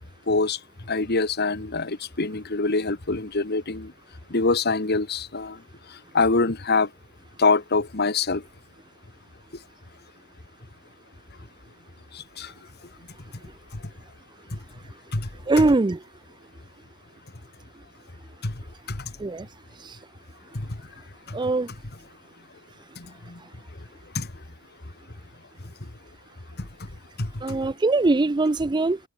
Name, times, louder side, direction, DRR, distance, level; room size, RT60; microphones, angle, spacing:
voice 1, 0.3-0.6 0.9-3.9 4.3-5.6 5.9-6.9 7.4-8.4 12.1-12.5 13.7-13.8 14.5-14.6 15.1-15.3 15.6-15.7 18.4-18.5 18.9-19.1 20.5-20.8 21.3-21.4 23.0-23.4 24.1-24.3 26.6-26.7 27.2-27.6, left 3 dB, 50° left, 1.7 m, -25 dB
voice 2, 15.5-16.0 19.2-19.5 19.8-20.0 21.3-21.7 27.4-29.0, right 2 dB, 20° right, 0.4 m, -22 dB
head